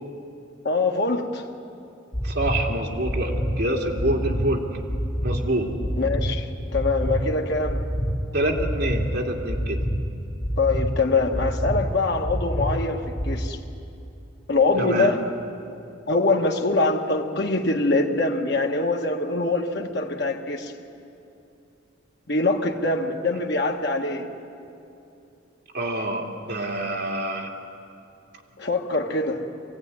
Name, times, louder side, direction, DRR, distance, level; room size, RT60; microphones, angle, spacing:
voice 1, 0.6-1.4 6.0-7.8 10.6-13.6 14.5-15.2 16.1-20.7 22.3-24.3 28.6-29.4, left 3 dB, 60° left, 1 dB, 1.7 m, -24 dB
sound 1, 2.1-2.5 3.0-3.5 4.0-4.4 4.9-5.3 5.8-6.2 6.7-7.1 7.6-8.1 8.6-9.0 9.5-9.9 10.4-10.8 11.3-11.7 12.2-12.7 13.2-13.3, equal, 20° left, 5.3 m, -26 dB
voice 2, 2.2-4.6 5.2-5.7 8.3-9.8 14.8-15.1 25.7-27.5, right 1 dB, 55° right, 0 dB, 2.7 m, -26 dB
24.5 x 16.0 x 9.8 m, 2.7 s
head